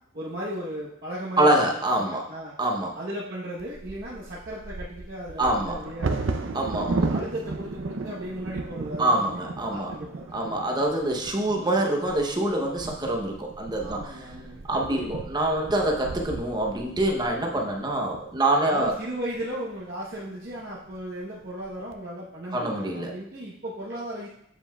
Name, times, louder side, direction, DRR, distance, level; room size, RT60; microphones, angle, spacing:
voice 1, 0.1-1.6 2.0-2.5 2.9-6.4 6.7-10.4 13.8-14.6 18.6-24.3, equal, 50° right, -7 dB, 1.0 m, -36 dB
voice 2, 1.4-2.3 2.6-3.0 5.4-5.8 6.5-7.1 9.0-9.9 10.3-14.2 14.7-18.9 22.5-23.1, right 1 dB, 20° right, 1 dB, 0.7 m, -25 dB
Bird vocalization bird call bird song / Wind / Thunder, 3.6-19.5 20.1-20.2 20.6-21.0 21.4-21.9, right 3 dB, 70° right, 0.6 m, -35 dB
7.6 x 7.3 x 2.3 m, 0.75 s
head